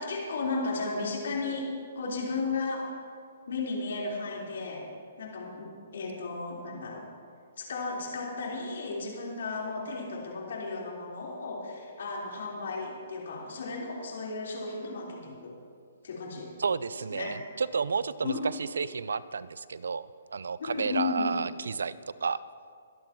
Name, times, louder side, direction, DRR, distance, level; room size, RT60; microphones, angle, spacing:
voice 1, 0.0-1.7 1.9-2.9 3.5-4.9 5.2-7.1 7.6-15.5 16.0-16.5 17.1-17.3 18.2-18.4 20.6-21.4, left 3 dB, 70° left, -3 dB, 4.2 m, -34 dB
voice 2, 16.6-22.4, right 5 dB, 80° right, 17 dB, 0.4 m, -31 dB
23.0 x 11.5 x 3.1 m, 2.2 s
hypercardioid pair, 140°, 0 cm